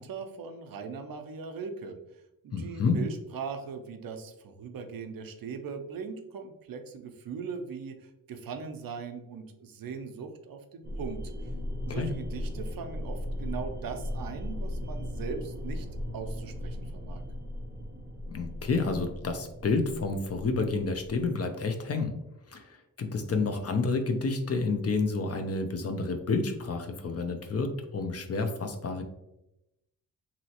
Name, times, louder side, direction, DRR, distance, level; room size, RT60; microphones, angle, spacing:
voice 1, 0.0-2.0 2.4-11.2 11.8-15.9 16.1-17.2, right 5 dB, 70° right, 6 dB, 0.5 m, -39 dB
voice 2, 2.5-3.0 11.9-12.1 18.3-22.1 22.5-29.0, left 3 dB, 45° left, 6 dB, 0.5 m, -29 dB
sound 1, 10.8-21.4, left 1 dB, 25° right, 0.7 m, -37 dB
3.0 x 2.7 x 2.8 m, 0.88 s
cardioid pair, 80°, 35 cm